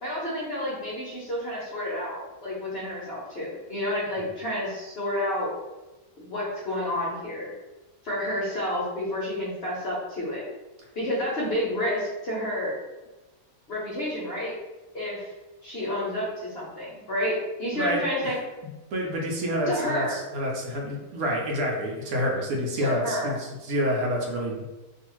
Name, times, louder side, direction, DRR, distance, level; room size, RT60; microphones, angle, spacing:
voice 1, 0.0-5.5 6.2-7.5 8.0-10.4 11.0-12.7 13.7-14.6 14.9-15.3 15.6-18.4 19.7-20.1 22.8-23.3, left 1 dB, 50° left, -6 dB, 0.8 m, -30 dB
voice 2, 17.7-18.3 18.9-24.6, equal, 75° right, 0 dB, 1.0 m, -28 dB
2.6 x 2.4 x 2.9 m, 1.1 s
omnidirectional pair, 1.6 m